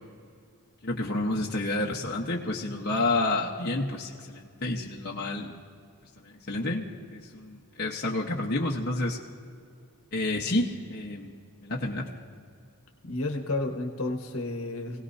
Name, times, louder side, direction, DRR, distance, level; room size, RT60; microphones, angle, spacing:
voice 1, 0.8-5.5 6.2-6.8 7.1-9.2 10.1-11.3 11.6-12.1, left 2 dB, 50° left, -3 dB, 1.2 m, -29 dB
voice 2, 13.0-15.0, left 2 dB, 70° left, 2 dB, 1.5 m, -31 dB
28.0 x 18.0 x 2.8 m, 2.2 s
head